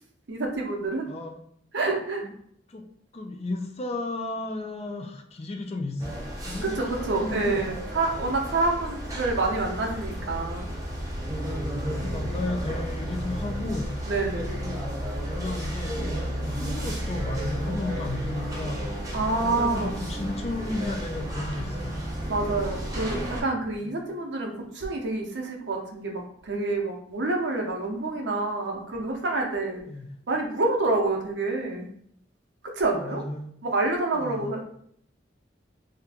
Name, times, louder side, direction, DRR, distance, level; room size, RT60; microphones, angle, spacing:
voice 1, 0.3-1.1 1.7-2.2 6.6-10.7 14.1-14.6 19.1-20.0 22.3-29.8 30.3-31.9 32.6-33.2 33.6-34.6, right 3 dB, 75° right, 1 dB, 0.7 m, -27 dB
voice 2, 1.1-1.4 2.2-2.3 2.7-2.8 3.1-6.1 6.4-7.6 11.7-14.8 15.3-18.8 19.3-22.0 23.8-24.0 29.9-30.1 32.9-33.5 34.2-34.5, left 2 dB, 35° left, 3 dB, 0.4 m, -34 dB
sound 1, 6.0-23.4, equal, 20° right, 0.7 m, -32 dB
2.8 x 2.5 x 3.4 m, 0.66 s
head